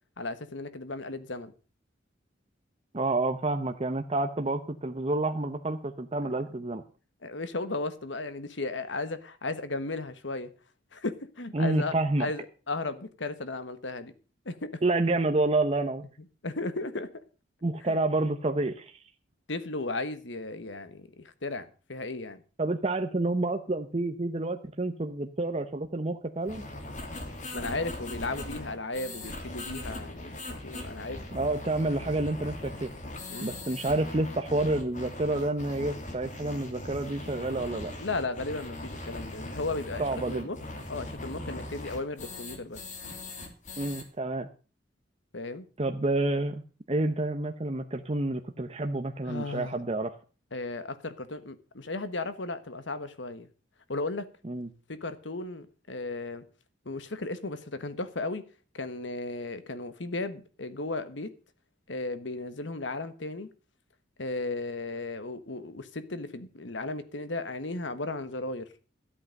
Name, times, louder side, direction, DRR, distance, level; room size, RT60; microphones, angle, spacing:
voice 1, 0.2-1.5 6.2-6.3 7.2-10.5 10.9-11.9 12.2-14.1 14.4-14.8 16.4-17.1 17.8-17.9 19.5-22.4 27.5-31.2 33.3-33.5 38.0-40.6 40.9-42.8 45.3-45.7 49.3-49.8 50.5-53.5 53.9-54.3 54.9-56.4 56.8-58.4 58.7-61.3 61.9-63.5 64.2-68.7, left 2 dB, 80° left, 12 dB, 1.4 m, -35 dB
voice 2, 2.9-6.8 11.5-12.3 14.8-16.1 17.6-19.0 22.6-26.6 31.3-32.9 33.4-37.9 40.0-40.5 43.8-44.5 45.8-46.6 46.9-50.1 54.4-54.7, right 2 dB, 35° right, 6 dB, 0.8 m, -29 dB
sound 1, 26.5-44.0, left 1 dB, 40° left, 2.8 m, -40 dB
13.5 x 8.7 x 6.5 m, 0.37 s
head